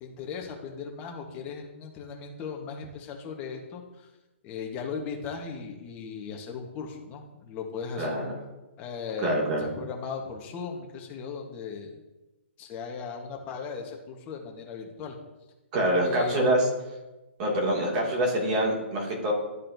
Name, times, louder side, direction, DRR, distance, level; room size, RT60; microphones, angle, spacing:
voice 1, 0.0-4.1 4.4-8.2 8.8-12.0 12.6-15.2 16.0-16.4, left 5 dB, 25° left, 2 dB, 1.2 m, -37 dB
voice 2, 8.0-8.3 9.2-9.7 15.7-16.6 17.4-19.3, right 1 dB, 35° right, -3 dB, 2.2 m, -25 dB
12.0 x 4.2 x 2.7 m, 1.1 s
hypercardioid pair, 150°, 7 cm